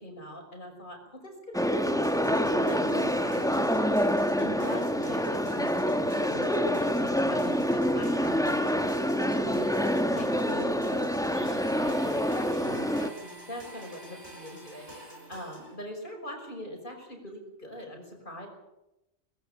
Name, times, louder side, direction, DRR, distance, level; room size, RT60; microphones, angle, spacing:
voice 1, 0.0-1.3 1.6-9.7 10.1-18.5, equal, 40° left, 2 dB, 6.1 m, -42 dB
sound 1, 1.5-13.1, equal, 5° left, 1.0 m, -27 dB
sound 2, 2.0-15.7, equal, 20° right, 6.0 m, -49 dB
Domestic sounds home sounds, 11.2-15.7, right 1 dB, 60° right, 5.0 m, -50 dB
21.5 x 15.0 x 8.9 m, 0.93 s
omnidirectional pair, 1.3 m